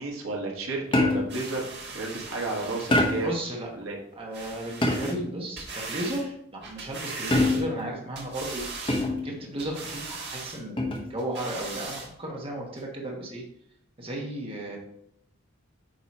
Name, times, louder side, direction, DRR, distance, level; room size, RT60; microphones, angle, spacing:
voice 1, 0.0-1.7 1.9-3.3 3.7-4.0, right 3 dB, 75° right, 0 dB, 1.4 m, -32 dB
sound 1, 0.9-1.4 2.9-3.4 4.8-5.3 7.3-7.9 8.9-9.3 10.8-11.1, left 1 dB, 25° left, 0.8 m, -25 dB
sound 2, 1.3-3.3 4.3-5.2 5.6-6.2 6.6-7.8 8.2-9.1 9.6-10.6 11.2-12.1 12.8-12.9, right 3 dB, 50° right, 1.4 m, -39 dB
voice 2, 3.2-3.7 4.2-9.0 9.2-13.4 14.0-14.8, right 1 dB, 25° right, -1 dB, 1.0 m, -34 dB
8.7 x 3.0 x 4.2 m, 0.72 s
head